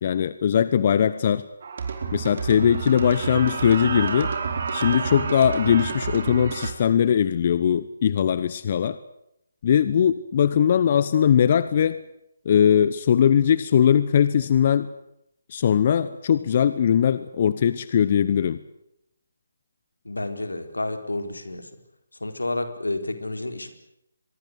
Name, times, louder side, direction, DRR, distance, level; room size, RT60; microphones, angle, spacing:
voice 1, 0.0-1.4 2.1-4.3 4.7-9.0 9.6-12.0 12.4-14.9 15.5-18.6, left 8 dB, 40° left, 15 dB, 1.0 m, -20 dB
sound 1, 1.6-6.7, right 5 dB, 50° right, 4.4 m, -29 dB
voice 2, 20.0-21.7 22.2-23.7, left 2 dB, 85° left, 8 dB, 4.3 m, -30 dB
24.0 x 22.5 x 8.1 m, 0.80 s
figure-of-eight pair, 150°, 0 cm